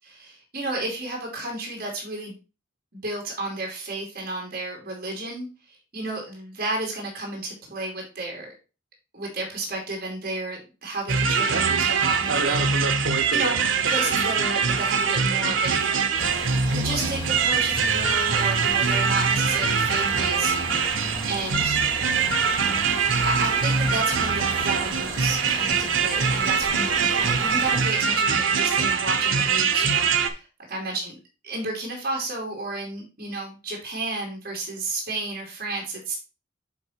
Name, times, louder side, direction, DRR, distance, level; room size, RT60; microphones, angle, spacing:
voice 1, 0.2-2.3 2.9-8.5 9.1-13.0 13.3-13.6 13.9-15.9 16.7-20.9 21.2-21.8 23.2-31.1 31.4-36.2, right 2 dB, 45° right, -1 dB, 2.7 m, -32 dB
sound 1, 11.1-30.3, right 5 dB, 80° right, 0.8 m, -23 dB
sound 2, 16.1-27.8, left 1 dB, 25° left, 1.5 m, -37 dB
8.4 x 3.6 x 4.4 m, 0.31 s
head